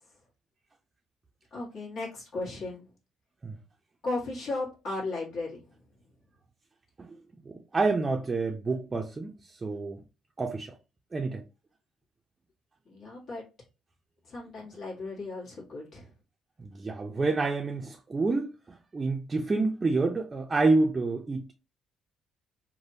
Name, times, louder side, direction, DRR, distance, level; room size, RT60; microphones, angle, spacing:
voice 1, 1.5-2.8 4.0-5.6 12.9-13.4 14.3-16.1, left 2 dB, 65° left, 1.3 m, -35 dB
voice 2, 7.4-10.0 10.4-10.7 11.1-11.4 16.6-21.5, right 3 dB, 25° right, 0.4 m, -28 dB
3.3 x 2.1 x 2.6 m
cardioid pair, 95°, 0 cm